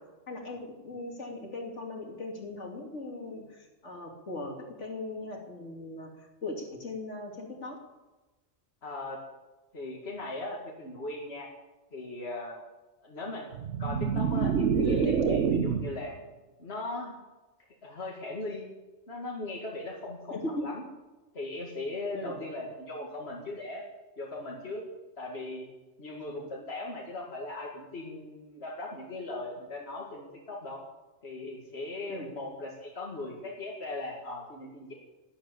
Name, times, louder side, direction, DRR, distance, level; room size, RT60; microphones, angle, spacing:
voice 1, 0.3-7.8 14.8-15.2 20.3-20.7 22.1-22.3 32.1-32.3, left 2 dB, 80° left, 0 dB, 3.2 m, -39 dB
voice 2, 8.8-9.2 9.7-11.5 11.9-12.6 13.0-13.5 13.8-16.1 16.6-17.2 17.8-18.7 19.1-20.8 21.3-23.8 24.2-24.8 25.2-25.7 26.0-30.8 31.2-34.9, left 2 dB, 60° left, -2 dB, 2.4 m, -38 dB
sound 1, 13.5-16.1, right 6 dB, 85° right, 1.2 m, -27 dB
12.0 x 11.5 x 8.6 m, 1.1 s
omnidirectional pair, 1.2 m